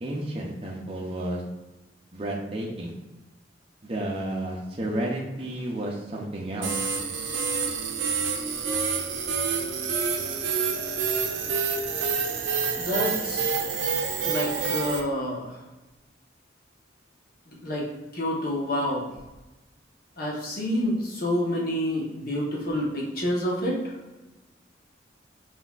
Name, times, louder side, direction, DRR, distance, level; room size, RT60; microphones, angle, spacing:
voice 1, 0.0-1.4 2.1-2.9 3.8-6.7, right 1 dB, 30° right, -2 dB, 0.5 m, -31 dB
sound 1, 6.6-15.0, right 5 dB, 80° right, 0.6 m, -27 dB
voice 2, 12.8-13.5 14.2-15.5 17.5-19.1 20.2-23.9, equal, 50° left, -3 dB, 1.0 m, -28 dB
4.1 x 4.0 x 2.4 m, 1.1 s
head